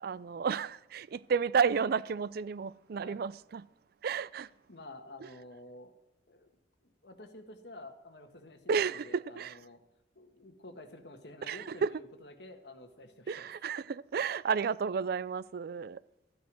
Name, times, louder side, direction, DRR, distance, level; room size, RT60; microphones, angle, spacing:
voice 1, 0.0-3.7 4.0-4.5 8.7-9.6 11.5-11.9 13.3-16.0, right 6 dB, 60° right, 0.4 m, -32 dB
voice 2, 4.7-5.9 6.3-6.5 6.8-9.8 10.1-13.6, left 2 dB, 65° left, 1.6 m, -50 dB
13.5 x 9.4 x 6.2 m
head